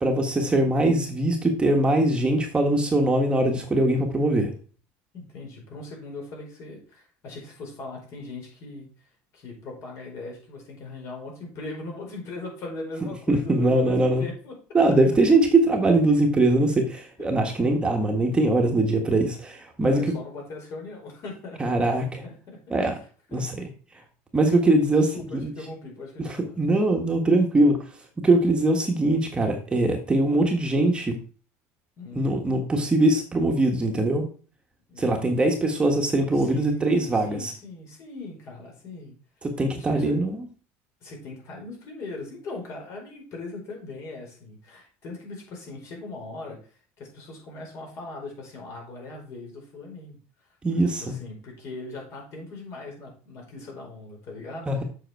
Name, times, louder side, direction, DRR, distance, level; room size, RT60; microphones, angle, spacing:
voice 1, 0.0-4.5 13.3-14.3 14.7-20.1 21.6-22.2 22.7-22.9 23.3-23.7 24.3-25.1 25.4-25.5 26.2-27.9 28.2-31.2 32.1-34.3 35.0-37.5 39.4-40.4 50.6-51.1 54.7-54.8, right 2 dB, 15° right, 3 dB, 1.3 m, -22 dB
voice 2, 5.1-8.9 9.3-14.5 17.2-18.2 19.8-21.6 21.9-22.8 23.3-23.4 24.9-26.6 32.0-32.5 34.9-35.7 36.3-39.1 39.7-40.2 41.0-50.2 50.7-54.8, left 2 dB, 50° left, 0 dB, 4.8 m, -40 dB
7.8 x 6.0 x 4.5 m, 0.40 s
cardioid pair, 130°, 6 cm